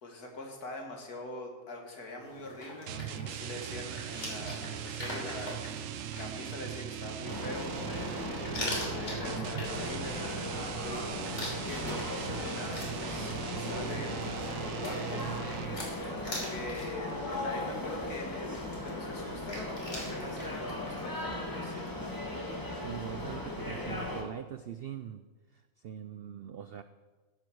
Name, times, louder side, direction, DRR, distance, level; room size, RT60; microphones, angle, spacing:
voice 1, 0.0-5.8 6.2-10.5 10.8-15.3 16.3-21.9, left 2 dB, 90° left, 2 dB, 2.5 m, -43 dB
sound 1, 2.2-21.1, left 1 dB, 50° left, 3.6 m, -44 dB
sound 2, 2.9-15.9, right 10 dB, 65° right, 0.9 m, -40 dB
sound 3, 7.2-24.2, left 1 dB, 15° left, 1.6 m, -37 dB
voice 2, 22.4-25.3 25.5-26.8, right 9 dB, 85° right, 11 dB, 0.5 m, -42 dB
15.0 x 7.7 x 6.3 m, 1.3 s
omnidirectional pair, 1.6 m